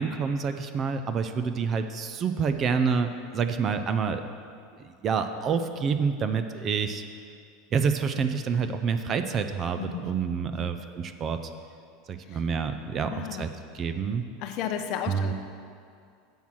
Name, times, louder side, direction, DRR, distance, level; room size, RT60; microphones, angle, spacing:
voice 1, 0.0-4.2 4.8-7.0 7.7-11.4 12.1-13.5 13.7-14.2 15.1-15.3, right 6 dB, 25° right, 9 dB, 0.4 m, -28 dB
voice 2, 9.8-10.1 10.5-10.7 12.3-12.4 13.0-13.5 14.4-15.3, left 8 dB, 45° left, 7 dB, 0.6 m, -34 dB
7.2 x 6.1 x 7.4 m, 2.3 s
supercardioid pair, 165°, 0 cm